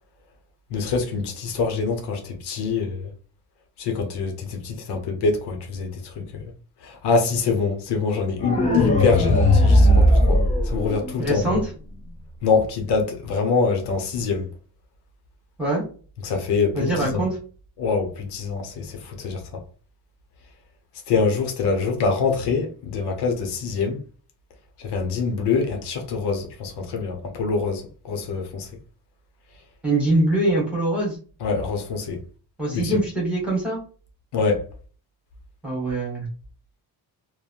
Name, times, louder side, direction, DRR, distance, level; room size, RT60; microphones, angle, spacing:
voice 1, 0.7-3.1 3.8-6.4 6.8-10.4 10.7-11.6 12.4-14.5 16.2-17.2 17.8-19.6 21.1-24.0 24.8-28.7 31.4-32.2 32.7-33.0 34.3-34.6, left 4 dB, 75° left, 0.8 m, -25 dB
sound 1, 8.4-11.4, left 1 dB, 20° left, 0.4 m, -17 dB
voice 2, 11.2-11.7 15.6-15.8 16.7-17.4 29.8-31.2 32.6-33.8 35.6-36.3, right 2 dB, 5° right, 1.2 m, -23 dB
3.1 x 2.1 x 2.5 m
cardioid pair, 170°, 40 cm